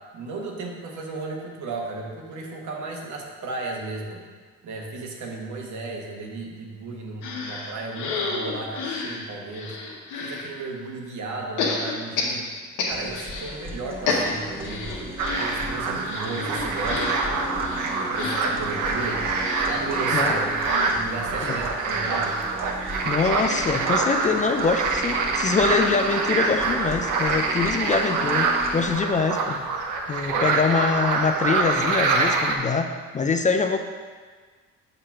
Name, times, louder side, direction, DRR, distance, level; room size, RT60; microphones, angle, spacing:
voice 1, 0.1-4.2 4.6-12.5 12.8-17.2 17.6-19.3 19.6-20.6 20.9-22.5 30.3-30.5, right 3 dB, 70° right, 0 dB, 1.2 m, -34 dB
sound 1, 7.2-10.5 11.6-13.6 13.8-25.8 26.1-26.2 26.4-26.6, left 3 dB, 90° left, 1.0 m, -32 dB
sound 2, 12.9-28.9, equal, 10° right, 0.9 m, -37 dB
sound 3, 15.2-32.6, right 4 dB, 90° right, 0.7 m, -25 dB
voice 2, 23.0-29.6 30.1-33.8, left 4 dB, 25° left, 5 dB, 0.4 m, -24 dB
6.6 x 3.0 x 5.7 m, 1.5 s
cardioid pair, 90°, 30 cm